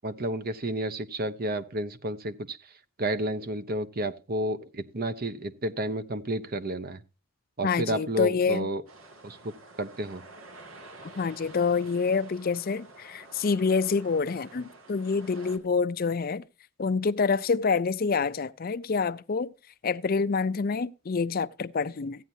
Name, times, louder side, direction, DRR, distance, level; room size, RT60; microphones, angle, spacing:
voice 1, 0.0-2.6 3.0-7.0 7.6-8.8 9.2-9.5 9.8-10.2, right 1 dB, 45° right, 0.9 m, -31 dB
voice 2, 7.6-8.7 11.0-16.4 16.8-19.5 19.8-22.2, left 5 dB, 45° left, 0.5 m, -27 dB
sound 1, 8.9-15.6, right 2 dB, 75° right, 2.2 m, -49 dB
15.0 x 9.2 x 2.7 m
head